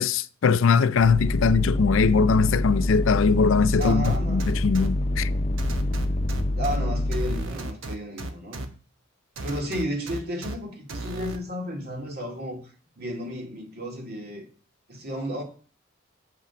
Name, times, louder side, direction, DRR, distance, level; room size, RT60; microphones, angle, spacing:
voice 1, 0.0-5.3, left 5 dB, 75° left, 0.4 m, -21 dB
sound 1, 1.0-7.5, left 1 dB, 35° left, 0.8 m, -26 dB
voice 2, 3.8-4.5 6.6-8.7 9.4-12.6 13.0-14.5 14.9-15.4, equal, 50° right, 2.3 m, -33 dB
Siel Bass, 3.8-4.9 5.6-6.8 7.1-8.7 9.4-10.5 10.9-11.4, right 2 dB, 75° right, 1.1 m, -34 dB
7.7 x 5.8 x 5.8 m
head